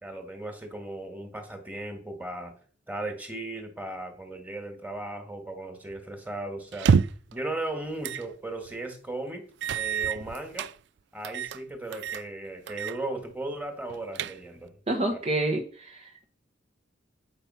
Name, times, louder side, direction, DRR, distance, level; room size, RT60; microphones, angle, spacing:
voice 1, 0.0-2.5 2.9-6.9 7.3-9.5 9.7-10.7 11.1-14.7, right 2 dB, 10° right, 5 dB, 1.8 m, -36 dB
sound 1, 6.7-7.3 8.0-8.3 8.7-8.8 9.6-10.7 11.2-11.6 11.9-12.2 12.7-13.0 13.3-13.4 13.9-14.7, right 6 dB, 65° right, 0.3 m, -27 dB
voice 2, 14.9-16.2, right 2 dB, 35° right, 0 dB, 1.0 m, -28 dB
8.9 x 5.7 x 5.6 m, 0.43 s
head